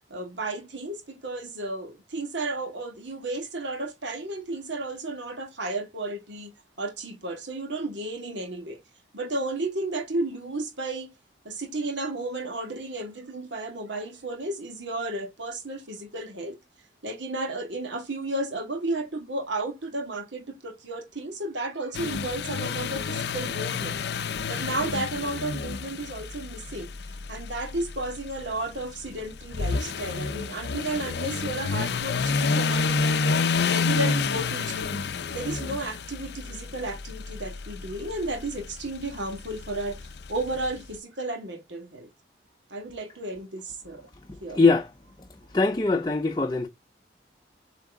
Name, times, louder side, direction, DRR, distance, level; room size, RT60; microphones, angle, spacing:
voice 1, 0.1-6.5 6.8-8.8 9.1-11.1 11.4-16.6 17.0-24.0 24.5-26.9 27.3-40.0 40.3-42.1 42.7-44.1 44.4-44.6, right 2 dB, 90° right, 2.1 m, -33 dB
sound 1, 21.9-40.8, left 4 dB, 70° left, 0.5 m, -30 dB
voice 2, 44.6-44.9 45.5-46.7, left 3 dB, 25° left, 0.5 m, -21 dB
7.6 x 3.5 x 3.6 m
head